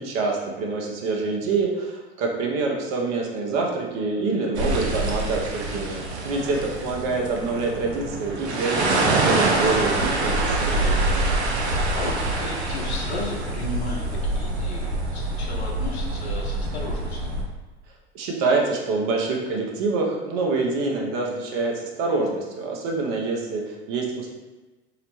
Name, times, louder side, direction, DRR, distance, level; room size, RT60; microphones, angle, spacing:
voice 1, 0.0-11.1 18.1-24.3, right 3 dB, 50° right, 0 dB, 0.7 m, -26 dB
sound 1, 4.5-17.4, right 2 dB, 85° right, 0.5 m, -25 dB
voice 2, 11.5-17.3, left 2 dB, 75° left, -2 dB, 0.8 m, -35 dB
2.8 x 2.1 x 3.0 m, 1.2 s
hypercardioid pair, 85°, 32 cm